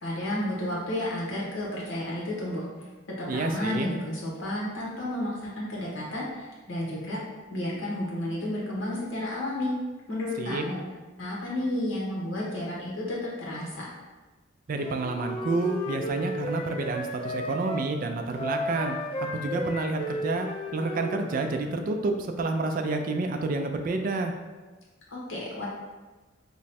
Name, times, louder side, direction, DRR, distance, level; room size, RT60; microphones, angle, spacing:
voice 1, 0.0-2.6 3.2-7.2 7.5-9.7 10.1-10.8 11.2-13.9 25.1-25.7, left 1 dB, 65° left, -5 dB, 1.1 m, -32 dB
voice 2, 3.3-3.9 10.4-10.6 14.7-19.0 19.3-20.5 20.7-24.3, right 3 dB, 45° right, 5 dB, 0.3 m, -29 dB
Wind instrument woodwind instrument, 14.8-17.9 18.3-21.6, left 1 dB, 25° left, 0.5 m, -34 dB
3.0 x 2.3 x 4.1 m, 1.3 s
head